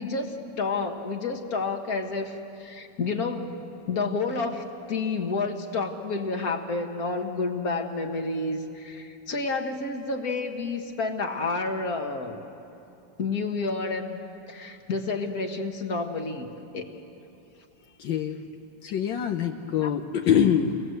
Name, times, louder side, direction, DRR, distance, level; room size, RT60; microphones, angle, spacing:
voice 1, 0.0-3.5 3.9-12.4 13.2-16.5 16.7-16.9 19.8-19.9, left 3 dB, 50° left, 4 dB, 2.1 m, -30 dB
voice 2, 18.0-18.5 18.8-20.8, left 8 dB, 75° left, 4 dB, 1.6 m, -24 dB
30.0 x 20.5 x 8.0 m, 2.9 s
omnidirectional pair, 2.0 m